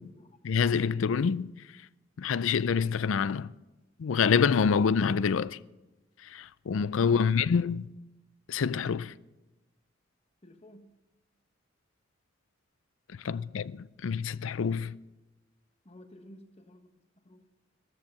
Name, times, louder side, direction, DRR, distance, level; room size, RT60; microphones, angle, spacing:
voice 1, 0.4-1.5 2.2-3.5 4.0-5.6 6.2-7.9 8.5-9.1 13.1-15.0, left 6 dB, 80° left, 0.4 m, -27 dB
voice 2, 10.4-10.9 13.2-13.4 15.8-17.4, left 1 dB, 30° left, 1.3 m, -53 dB
13.5 x 13.5 x 5.8 m
head